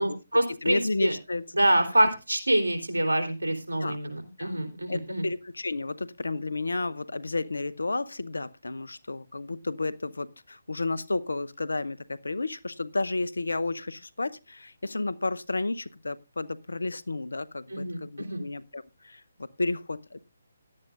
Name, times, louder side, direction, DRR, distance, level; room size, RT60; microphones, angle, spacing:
voice 1, 0.0-1.1 1.5-5.2 17.7-18.4, right 1 dB, 80° right, 5 dB, 3.4 m, -26 dB
voice 2, 0.6-1.5 3.8-4.0 4.4-4.6 4.9-19.2 19.6-20.2, left 2 dB, 75° left, 17 dB, 0.8 m, -32 dB
17.5 x 11.5 x 2.4 m, 0.27 s
figure-of-eight pair, 145°, 0 cm